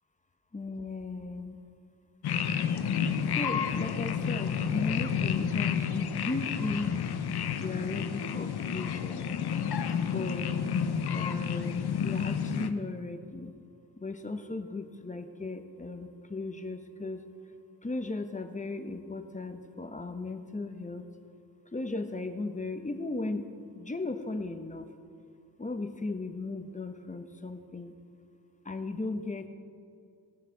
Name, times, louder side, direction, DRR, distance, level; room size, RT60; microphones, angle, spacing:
voice 1, 0.5-1.7 3.4-7.0 7.6-9.3 10.0-10.6 11.1-13.5 14.0-17.3 17.8-21.1 21.7-24.9 25.6-27.9 28.6-29.5, left 3 dB, 20° left, 7 dB, 1.0 m, -36 dB
sound 1, 2.2-12.7, left 7 dB, 80° left, 0.8 m, -30 dB
18.5 x 6.6 x 4.6 m, 2.4 s
cardioid pair, 80°, 38 cm